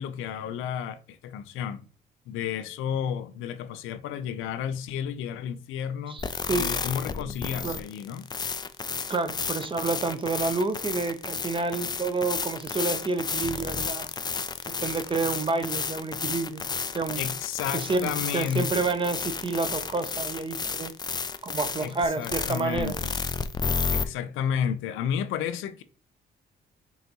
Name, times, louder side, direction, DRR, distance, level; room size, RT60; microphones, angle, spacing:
voice 1, 0.0-1.8 2.3-6.2 6.6-8.3 17.2-18.9 21.8-23.1 23.9-25.8, left 8 dB, 90° left, 0.5 m, -32 dB
voice 2, 6.1-6.7 7.3-7.4 7.6-7.8 9.1-14.1 14.8-16.6 16.9-17.3 17.7-20.9 21.4-22.9, right 3 dB, 25° right, 0.6 m, -29 dB
sound 1, 6.2-24.0, left 5 dB, 20° left, 0.3 m, -32 dB
5.5 x 2.6 x 2.9 m
cardioid pair, 90°, 20 cm